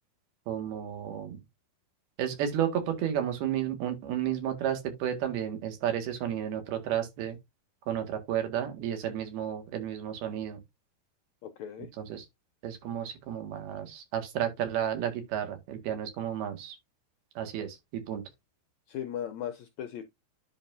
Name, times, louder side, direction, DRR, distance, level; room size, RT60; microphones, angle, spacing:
voice 1, 0.5-1.4 2.2-7.4 7.9-10.6 12.0-12.3 12.6-16.8 17.4-18.2, right 10 dB, 90° right, 3.9 m, -32 dB
voice 2, 11.4-11.9 18.9-20.0, left 10 dB, 85° left, 1.6 m, -37 dB
10.5 x 5.7 x 2.7 m
omnidirectional pair, 4.3 m